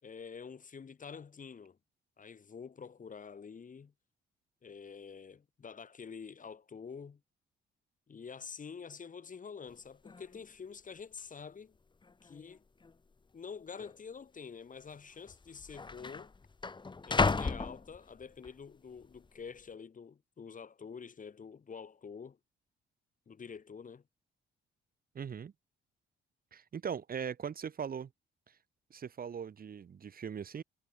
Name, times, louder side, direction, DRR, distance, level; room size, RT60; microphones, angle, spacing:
voice 1, 0.0-1.8 2.2-3.9 4.6-7.2 8.1-11.8 12.2-12.6 13.3-16.3 17.0-22.4 23.3-24.0, left 6 dB, 40° left, 6.2 m, -47 dB
sound 1, 9.7-9.8 10.1-10.5 11.2-11.3 12.0-12.5 12.8-12.9 13.8-14.0 15.0-15.1 15.3-18.5 19.0-19.4, left 4 dB, 25° left, 1.4 m, -34 dB
voice 2, 25.1-25.5 26.5-28.1 28.9-30.6, right 7 dB, 50° right, 2.3 m, -40 dB
cardioid pair, 90°, 20 cm